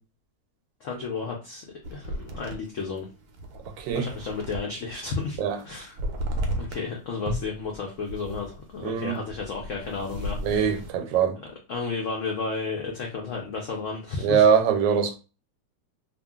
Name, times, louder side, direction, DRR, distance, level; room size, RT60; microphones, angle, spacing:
voice 1, 0.8-1.6 1.9-3.1 3.9-6.0 6.6-10.7 11.4-14.5, left 4 dB, 85° left, 0.6 m, -33 dB
sound 1, 1.8-4.9 5.2-6.9 7.2-10.9, equal, 70° right, 1.0 m, -34 dB
voice 2, 3.8-4.1 5.4-5.6 8.8-9.2 10.4-11.3 14.2-15.2, right 7 dB, 85° right, 1.3 m, -22 dB
2.8 x 2.4 x 2.2 m
omnidirectional pair, 2.0 m